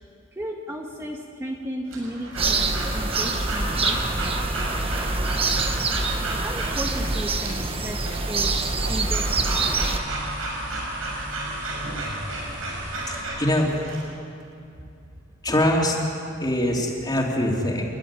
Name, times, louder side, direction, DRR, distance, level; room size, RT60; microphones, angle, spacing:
voice 1, 0.3-4.5 6.4-8.0 8.2-8.5 8.9-9.9, equal, 15° right, 0 dB, 1.5 m, -35 dB
Breathing / Dog, 1.9-14.0, right 2 dB, 90° right, 6.4 m, -33 dB
sound 1, 2.4-10.0, right 3 dB, 30° right, 1.3 m, -25 dB
sound 2, 3.8-13.2, right 1 dB, 65° right, 3.7 m, -40 dB
voice 2, 13.4-13.7 15.4-16.0 16.4-17.8, left 1 dB, 20° left, -1 dB, 3.2 m, -22 dB
29.5 x 12.0 x 9.9 m, 2.5 s
head